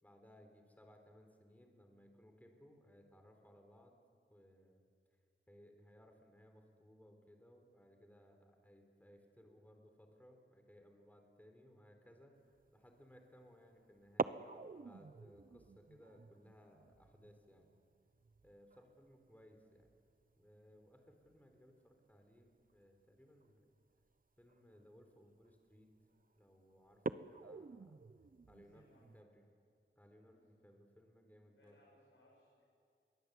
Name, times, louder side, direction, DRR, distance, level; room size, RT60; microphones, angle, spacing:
voice 1, 0.0-3.9 4.3-4.8 5.5-12.3 12.7-14.4 14.8-17.7 18.4-19.9 20.4-23.7 24.4-25.9 26.4-27.9 28.5-29.4 30.0-31.7, equal, 10° left, 4 dB, 3.9 m, -63 dB
sound 1, 12.5-12.8 14.0-20.5 20.7-20.8 21.2-21.6 22.6-22.8 23.4-23.5 24.0-24.1 24.5-24.8 25.4-25.8 26.2-26.3 26.9-29.2, right 4 dB, 45° right, 0.8 m, -46 dB
voice 2, 28.4-29.1 30.2-30.7 31.5-32.6, left 1 dB, 75° left, -3 dB, 6.1 m, -70 dB
29.5 x 22.5 x 8.3 m, 2.3 s
wide cardioid pair, 90°, 20 cm